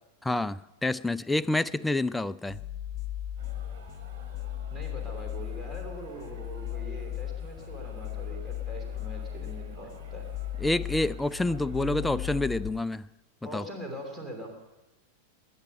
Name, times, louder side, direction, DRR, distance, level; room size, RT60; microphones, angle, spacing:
voice 1, 0.2-2.6 10.6-13.1 13.5-13.6, left 2 dB, 5° left, 16 dB, 0.4 m, -28 dB
sound 1, 2.5-12.7, left 11 dB, 30° left, 1.5 m, -37 dB
sound 2, 3.4-12.5, right 4 dB, 50° right, 4.3 m, -53 dB
voice 2, 4.7-10.3 11.7-12.4 13.4-14.5, right 1 dB, 10° right, 1 dB, 3.1 m, -42 dB
21.5 x 9.5 x 5.5 m, 1.1 s
figure-of-eight pair, 90°, 0 cm